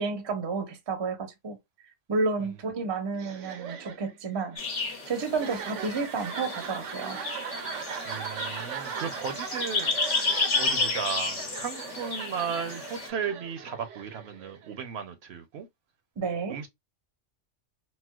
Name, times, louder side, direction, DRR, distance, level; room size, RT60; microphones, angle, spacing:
voice 1, 0.0-1.6 2.1-4.6 5.1-7.2 16.2-16.6, right 4 dB, 30° right, 0.5 m, -31 dB
sound 1, 3.1-14.8, right 7 dB, 85° right, 1.0 m, -39 dB
sound 2, 4.6-13.1, left 4 dB, 70° left, 1.3 m, -32 dB
voice 2, 8.1-15.7 16.5-16.7, right 7 dB, 65° right, 0.8 m, -35 dB
4.1 x 2.1 x 2.2 m
omnidirectional pair, 1.2 m